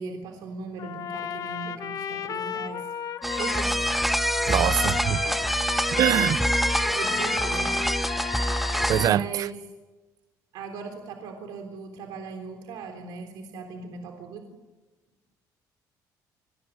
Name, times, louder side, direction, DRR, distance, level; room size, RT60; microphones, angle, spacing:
voice 1, 0.0-2.9 3.3-3.8 4.2-4.8 5.2-5.6 6.1-7.7 8.9-9.6 10.5-14.6, right 5 dB, 85° right, 3.7 m, -38 dB
Trumpet, 0.8-9.1, left 8 dB, 55° left, 1.6 m, -34 dB
sound 1, 3.2-9.1, equal, ahead, 0.8 m, -25 dB
voice 2, 4.5-5.2 5.9-6.4 8.9-9.5, right 11 dB, 60° right, 0.8 m, -23 dB
28.0 x 21.5 x 9.6 m
cardioid pair, 115°, 7 cm